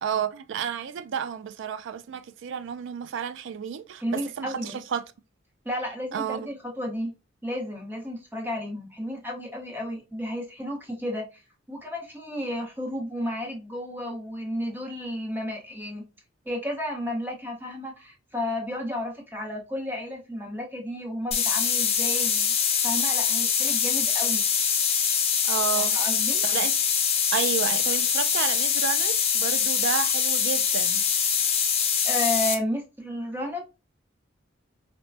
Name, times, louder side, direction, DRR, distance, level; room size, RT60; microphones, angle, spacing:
voice 1, 0.0-5.0 6.1-6.5 25.4-25.9 26.4-26.7 27.3-31.2, right 8 dB, 65° right, 0.3 m, -31 dB
voice 2, 4.0-4.8 5.6-7.1 7.4-11.4 11.7-16.0 16.5-22.5 22.8-24.4 25.7-26.4 32.0-33.6, left 1 dB, 10° right, 0.8 m, -32 dB
sound 1, 21.3-32.5, left 7 dB, 30° left, 0.6 m, -24 dB
4.1 x 2.2 x 2.5 m
head